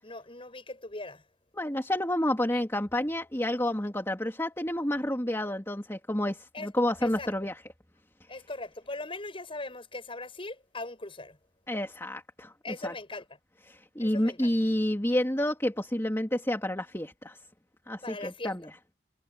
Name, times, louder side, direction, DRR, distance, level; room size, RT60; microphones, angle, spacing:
voice 1, 0.0-1.2 6.5-6.7 7.0-7.3 8.3-11.4 12.6-13.4 14.0-14.5 18.0-18.5, left 2 dB, 30° left, 7.6 m, -40 dB
voice 2, 1.5-7.5 11.7-12.5 12.8-12.9 13.7-17.4 17.9-18.7, left 1 dB, 15° left, 2.8 m, -29 dB
head